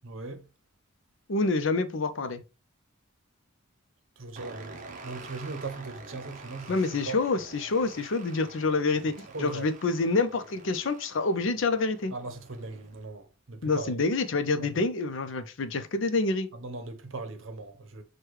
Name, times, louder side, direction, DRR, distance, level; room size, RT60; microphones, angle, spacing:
voice 1, 0.0-0.5 4.2-7.2 9.3-9.7 12.1-13.9 14.6-14.8 16.5-18.0, right 3 dB, 70° right, 0.7 m, -39 dB
voice 2, 1.3-2.4 6.7-12.1 13.6-16.5, left 3 dB, 65° left, 0.6 m, -27 dB
sound 1, 4.4-13.0, right 3 dB, 35° right, 0.6 m, -47 dB
6.3 x 2.3 x 3.1 m
head